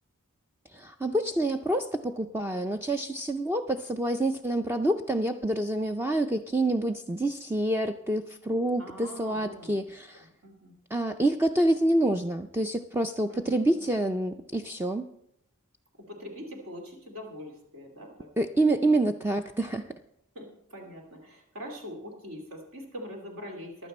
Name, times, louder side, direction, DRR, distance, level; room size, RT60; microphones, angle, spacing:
voice 1, 0.7-10.3 10.9-15.1 18.4-19.9, right 1 dB, 10° right, 6 dB, 0.4 m, -27 dB
voice 2, 8.8-9.8 10.4-10.7 13.3-14.2 16.0-18.3 18.6-18.7 20.3-23.9, equal, 65° right, 1 dB, 2.6 m, -43 dB
15.5 x 11.5 x 4.3 m, 0.75 s
head